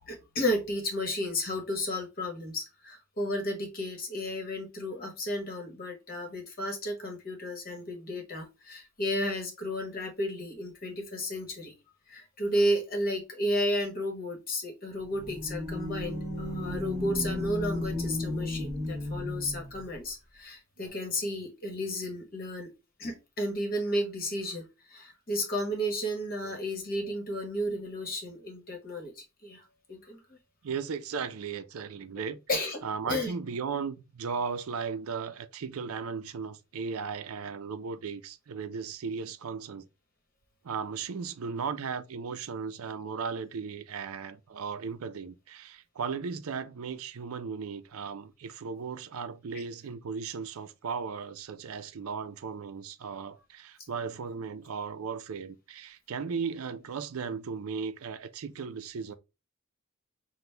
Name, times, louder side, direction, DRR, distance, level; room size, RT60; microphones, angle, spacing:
voice 1, 0.1-11.7 12.1-22.7 23.0-29.6 29.9-30.2 32.5-32.8 33.1-33.3, equal, 40° left, 1.2 m, -33 dB
sound 1, 15.0-19.8, left 1 dB, 15° right, 1.3 m, -34 dB
voice 2, 30.6-32.4 32.8-39.9 40.6-59.1, right 5 dB, 80° right, 0.5 m, -36 dB
5.9 x 2.2 x 3.3 m
head